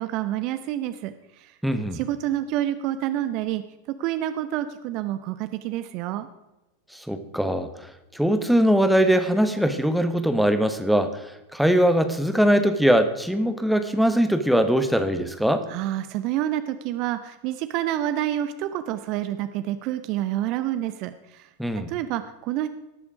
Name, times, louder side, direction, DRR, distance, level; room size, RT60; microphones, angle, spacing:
voice 1, 0.0-1.5 1.9-3.6 4.0-6.3 15.7-21.5 21.9-22.7, right 12 dB, 40° right, 11 dB, 0.7 m, -28 dB
voice 2, 1.6-2.0 6.9-15.7 21.6-21.9, equal, ahead, 9 dB, 1.0 m, -21 dB
18.0 x 7.0 x 4.9 m, 0.98 s
figure-of-eight pair, 90°, 0 cm